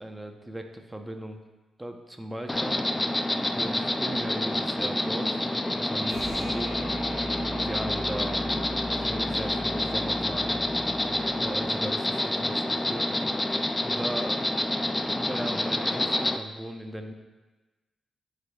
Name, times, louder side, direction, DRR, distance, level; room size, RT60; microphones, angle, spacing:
voice 1, 0.0-1.4 1.8-2.8 3.6-7.0 7.4-8.5 8.9-11.0 11.4-13.1 13.8-14.4 15.1-17.1, right 1 dB, 10° right, 5 dB, 0.8 m, -38 dB
Insect, 2.5-16.4, left 1 dB, 15° left, 0.4 m, -28 dB
sound 1, 6.0-12.4, right 1 dB, 80° right, 1.4 m, -40 dB
11.0 x 5.0 x 2.4 m, 1.2 s
cardioid pair, 70°, 0 cm